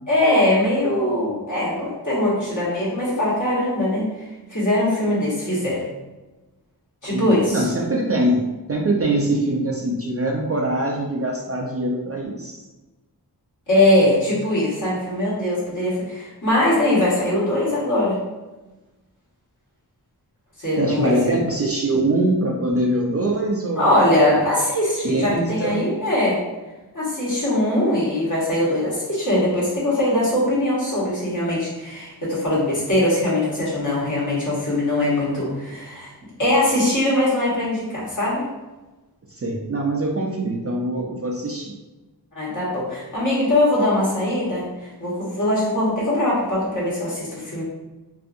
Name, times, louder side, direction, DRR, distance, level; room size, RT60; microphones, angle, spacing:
voice 1, 0.1-4.0 4.5-5.8 7.0-7.6 13.7-18.2 20.6-21.4 23.8-26.4 26.9-36.1 36.4-38.4 42.3-47.6, left 1 dB, 50° left, -8 dB, 1.3 m, -21 dB
voice 2, 7.1-12.6 20.8-24.0 25.0-25.8 39.3-41.7, right 1 dB, 35° right, -1 dB, 0.4 m, -23 dB
2.6 x 2.4 x 2.5 m, 1.1 s
wide cardioid pair, 55°, 40 cm